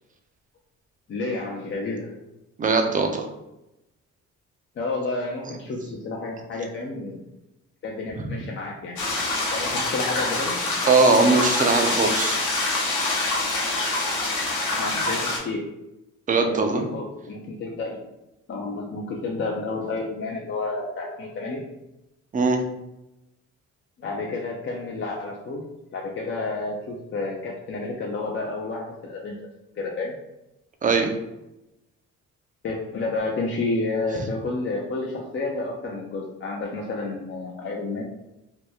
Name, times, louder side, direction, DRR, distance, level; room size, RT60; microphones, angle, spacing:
voice 1, 1.1-2.1 4.8-7.2 7.8-9.0 9.5-10.6 14.8-15.6 16.4-18.0 18.5-21.6 24.0-25.6 25.9-29.4 29.8-30.1 32.6-38.0, left 3 dB, 40° left, -2 dB, 0.5 m, -30 dB
voice 2, 2.6-3.3 10.9-12.4 16.3-16.8 22.3-22.6 30.8-31.1, right 3 dB, 25° right, 4 dB, 0.5 m, -20 dB
sound 1, 9.0-15.4, left 2 dB, 80° left, 0.9 m, -25 dB
2.9 x 2.2 x 3.4 m, 0.93 s
cardioid pair, 90°, 30 cm